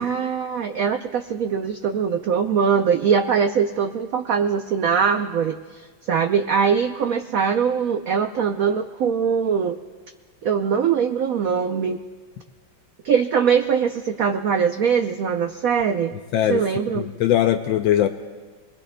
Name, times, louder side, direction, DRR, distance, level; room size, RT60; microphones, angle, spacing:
voice 1, 0.0-9.8 10.4-12.0 13.0-16.1 16.5-17.1, right 7 dB, 90° right, 6 dB, 0.7 m, -22 dB
voice 2, 16.3-16.6 16.9-18.1, left 11 dB, 75° left, 6 dB, 1.3 m, -20 dB
29.0 x 21.0 x 2.2 m, 1.4 s
omnidirectional pair, 2.2 m